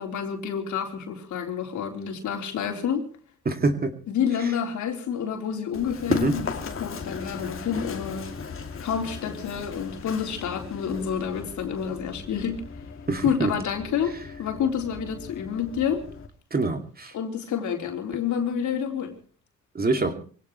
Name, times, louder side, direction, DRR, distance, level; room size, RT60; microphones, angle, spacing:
voice 1, 0.0-3.1 4.1-8.3 8.8-12.6 13.2-14.1 14.4-16.0 17.1-19.1, left 7 dB, 75° left, 3 dB, 4.0 m, -28 dB
voice 2, 3.5-3.9 6.1-6.3 13.1-13.6 16.5-17.1 19.7-20.1, right 3 dB, 30° right, 6 dB, 2.6 m, -25 dB
Run, 5.7-16.3, left 5 dB, 45° left, 2.7 m, -36 dB
24.5 x 17.5 x 3.1 m, 0.41 s
cardioid pair, 90°, 30 cm